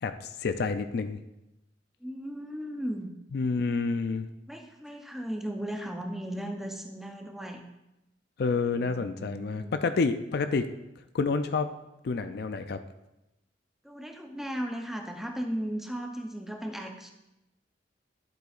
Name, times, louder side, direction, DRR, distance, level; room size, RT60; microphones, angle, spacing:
voice 1, 0.0-1.2 3.3-4.3 8.4-10.7 11.1-11.7 12.0-12.8, left 4 dB, 60° left, 9 dB, 0.4 m, -28 dB
voice 2, 2.0-3.1 4.5-7.6 8.8-10.0 13.8-17.1, equal, ahead, 3 dB, 0.7 m, -36 dB
11.5 x 7.8 x 2.4 m, 0.92 s
head